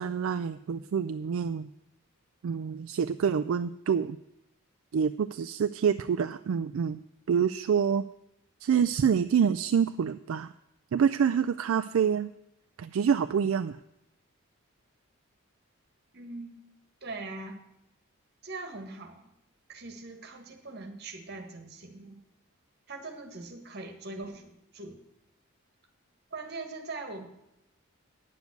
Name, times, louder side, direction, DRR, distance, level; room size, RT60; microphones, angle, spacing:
voice 1, 0.0-1.7 2.4-4.2 4.9-7.0 7.3-8.1 8.6-10.5 10.9-12.3 12.8-13.8, right 7 dB, 70° right, 11 dB, 0.3 m, -27 dB
voice 2, 16.1-16.6 17.0-17.6 18.4-19.3 19.7-22.2 22.9-25.0 26.3-27.3, right 3 dB, 50° right, 5 dB, 1.5 m, -41 dB
9.3 x 7.2 x 8.0 m, 0.83 s
head